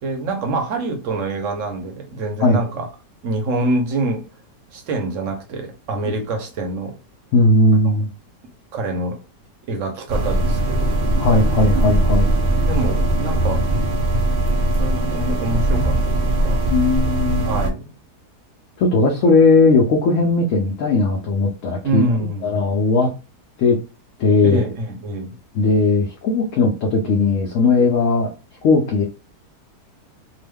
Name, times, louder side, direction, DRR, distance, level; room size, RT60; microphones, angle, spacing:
voice 1, 0.0-2.9 3.2-4.2 4.7-6.9 7.8-7.9 8.7-9.2 9.7-11.0 12.7-13.7 14.8-16.6 17.5-17.9 21.8-22.7 24.4-25.3, right 2 dB, 60° right, 1.0 m, -25 dB
voice 2, 7.3-8.1 11.2-12.2 16.7-17.6 18.8-22.0 22.4-23.1 23.6-23.8 24.2-24.6 25.5-28.3 28.6-29.0, left 3 dB, 65° left, 0.8 m, -17 dB
sound 1, 10.1-17.7, right 1 dB, 80° right, 0.5 m, -20 dB
3.0 x 2.1 x 3.3 m
omnidirectional pair, 1.7 m